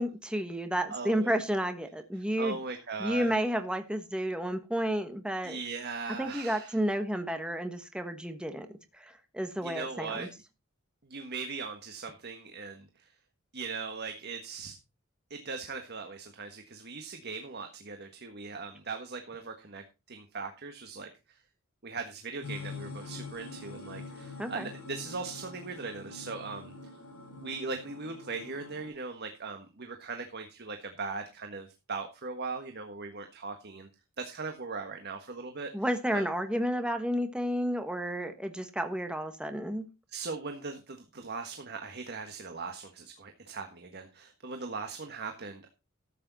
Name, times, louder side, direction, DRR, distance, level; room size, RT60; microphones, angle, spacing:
voice 1, 0.0-2.6 3.0-5.6 6.2-8.7 9.0-10.3 24.4-24.7 35.7-39.8, equal, 5° right, 7 dB, 1.3 m, -31 dB
voice 2, 0.9-1.3 2.1-3.3 5.4-6.8 9.6-10.3 11.0-13.1 13.5-14.7 15.3-21.4 21.8-26.7 27.4-33.9 34.2-35.7 36.1-36.2 40.1-45.7, right 4 dB, 50° right, 6 dB, 1.5 m, -39 dB
sound 1, 22.4-28.9, left 3 dB, 85° left, 5.9 m, -44 dB
13.5 x 8.7 x 4.1 m, 0.28 s
head